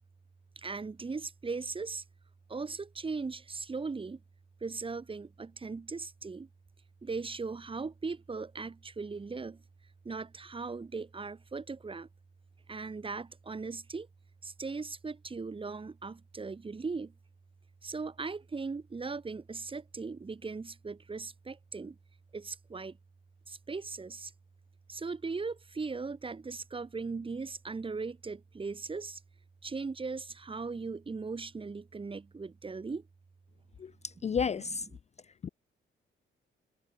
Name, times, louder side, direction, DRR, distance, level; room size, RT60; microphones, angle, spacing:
voice 1, 0.5-2.0 2.5-4.2 4.6-6.5 7.0-9.6 10.0-12.1 12.7-14.1 14.4-17.1 17.8-22.0 22.3-23.0 23.5-24.3 24.9-29.2 29.6-33.0 34.2-34.4, right 4 dB, 25° right, 1.4 m, -38 dB
voice 2, 34.2-34.9 35.4-35.5, left 6 dB, 35° left, 0.4 m, -31 dB
cardioid pair, 115°, 21 cm